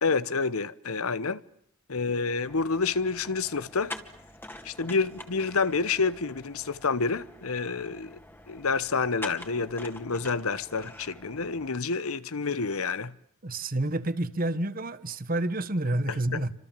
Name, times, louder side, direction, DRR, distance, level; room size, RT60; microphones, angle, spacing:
voice 1, 0.0-1.4 1.9-3.9 4.6-8.2 8.5-13.1 16.3-16.4, left 4 dB, 80° left, 1.1 m, -28 dB
sound 1, 2.4-11.7, left 1 dB, 10° left, 2.3 m, -45 dB
voice 2, 13.4-16.5, right 1 dB, 40° right, 1.4 m, -29 dB
29.5 x 26.0 x 7.5 m
head